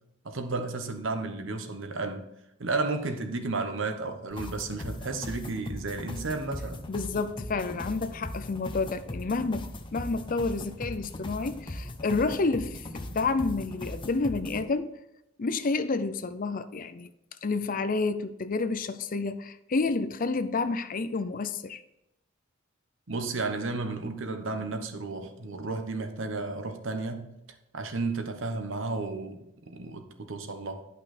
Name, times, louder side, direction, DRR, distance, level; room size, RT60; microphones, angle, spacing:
voice 1, 0.2-2.3 2.6-6.8 23.1-27.3 27.7-30.9, right 3 dB, 60° right, 1.1 m, -33 dB
sound 1, 4.3-14.6, left 1 dB, 25° left, 0.8 m, -39 dB
voice 2, 6.9-15.0 15.4-17.1 17.4-21.8, left 3 dB, 40° left, 0.5 m, -29 dB
11.5 x 5.5 x 4.2 m
head